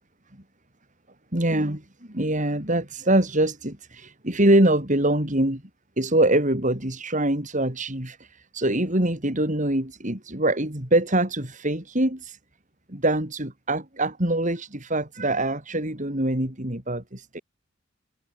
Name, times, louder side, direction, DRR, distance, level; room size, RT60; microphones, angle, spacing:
voice 1, 1.3-5.6 6.0-12.4 12.9-17.4, right 1 dB, 40° right, 5.0 m, -24 dB
head